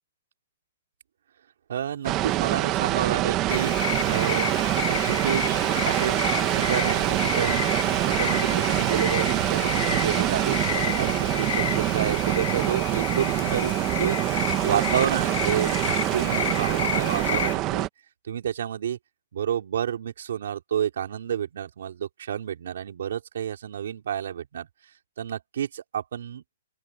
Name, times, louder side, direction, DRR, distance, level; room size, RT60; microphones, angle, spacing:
voice 1, 1.7-3.7 4.1-6.2 6.5-7.6 8.0-17.9 18.3-19.0 19.3-24.7 25.2-26.4, right 9 dB, 65° right, 4.9 m, -30 dB
sound 1, 2.0-17.9, right 16 dB, 20° right, 1.1 m, -25 dB
sound 2, 3.5-17.5, left 9 dB, 55° left, 0.8 m, -31 dB
open air
hypercardioid pair, 170°, 0 cm